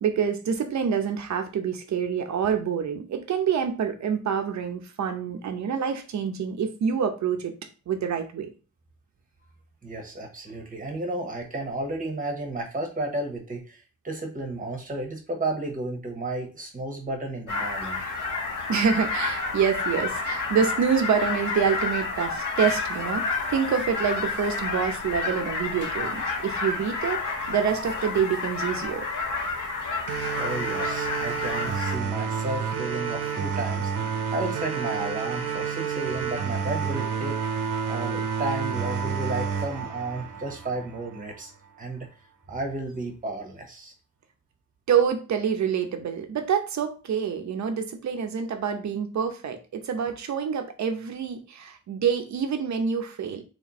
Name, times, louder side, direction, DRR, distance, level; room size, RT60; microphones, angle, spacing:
voice 1, 0.0-7.5 7.9-8.5 18.7-27.2 27.5-29.1 44.9-53.4, right 7 dB, 60° right, 6 dB, 0.8 m, -26 dB
voice 2, 9.8-18.0 30.4-37.4 37.9-41.5 41.8-42.1 42.5-43.9, right 2 dB, 25° right, 3 dB, 1.1 m, -33 dB
sound 1, 17.5-32.0, left 4 dB, 70° left, 1.7 m, -30 dB
sound 2, 30.1-41.1, right 6 dB, 85° right, 1.0 m, -29 dB
4.3 x 3.2 x 3.0 m, 0.34 s
wide cardioid pair, 145°, 31 cm